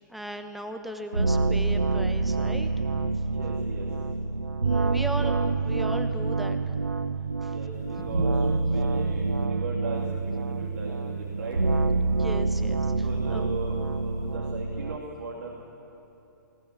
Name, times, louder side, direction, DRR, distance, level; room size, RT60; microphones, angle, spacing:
voice 1, 0.1-2.7 4.6-5.4 5.6-6.7 7.4-7.5 12.1-13.4, right 1 dB, ahead, 7 dB, 1.1 m, -37 dB
sound 1, 1.1-15.0, right 3 dB, 85° right, 0.7 m, -27 dB
voice 2, 3.3-3.9 5.1-5.3 7.5-11.6 13.0-15.5, right 3 dB, 65° right, -2 dB, 2.9 m, -38 dB
sound 2, 7.7-9.4 9.9-14.4, left 8 dB, 30° left, 1.2 m, -50 dB
20.0 x 18.5 x 7.4 m, 2.8 s
figure-of-eight pair, 120°, 11 cm